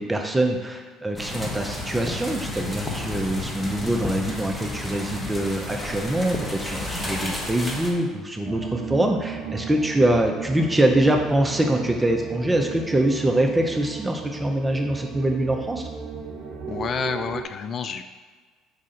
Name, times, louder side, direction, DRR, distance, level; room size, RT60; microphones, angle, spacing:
voice 1, 0.0-15.9, right 1 dB, 15° right, 2 dB, 0.7 m, -24 dB
sound 1, 1.2-7.9, left 2 dB, 20° left, 0.9 m, -31 dB
sound 2, 8.5-17.4, right 5 dB, 55° right, 0.5 m, -35 dB
voice 2, 16.7-18.0, left 6 dB, 45° left, 9 dB, 0.3 m, -29 dB
4.9 x 2.5 x 4.2 m, 1.4 s
hypercardioid pair, 60°, 0 cm